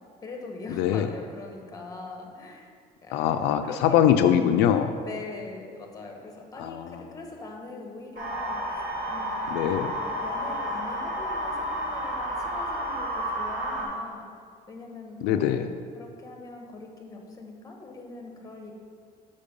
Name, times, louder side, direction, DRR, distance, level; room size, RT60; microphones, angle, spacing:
voice 1, 0.2-2.7 3.0-3.3 3.6-4.3 5.1-8.8 9.1-9.4 10.0-14.3 14.7-15.6 15.9-18.7, left 3 dB, 20° left, 2 dB, 1.2 m, -42 dB
voice 2, 0.8-1.1 3.1-4.9 6.6-6.9 9.5-9.9 15.2-15.7, left 9 dB, 90° left, 8 dB, 0.4 m, -22 dB
sound 1, 8.2-13.9, equal, 55° right, 2.1 m, -31 dB
6.7 x 5.2 x 5.2 m, 2.1 s
cardioid pair, 120°, 17 cm